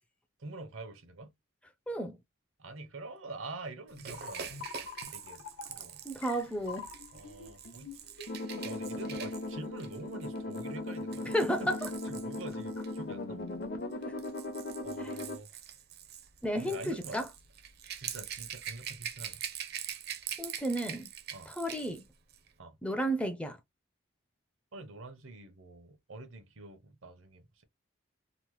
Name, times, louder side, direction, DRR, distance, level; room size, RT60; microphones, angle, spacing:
voice 1, 0.4-1.3 2.6-4.6 5.1-6.0 7.1-7.9 8.6-11.3 11.6-11.7 12.1-13.4 14.8-15.6 16.6-17.2 18.0-19.4 21.3-21.5 22.6-22.8 24.7-27.6, right 2 dB, 80° right, 0.8 m, -46 dB
voice 2, 1.9-2.2 6.1-6.9 11.3-11.9 14.1-14.2 15.0-15.1 16.4-17.3 20.4-21.1 21.5-22.0 22.8-23.6, equal, 5° left, 0.4 m, -32 dB
sound 1, 3.9-9.1, left 5 dB, 85° left, 0.6 m, -47 dB
Rattle / Rattle (instrument), 4.0-13.0 13.9-22.0 22.3-22.5, right 9 dB, 50° right, 0.5 m, -44 dB
sound 2, 8.3-15.4, left 2 dB, 50° left, 0.6 m, -38 dB
2.9 x 2.0 x 3.1 m
head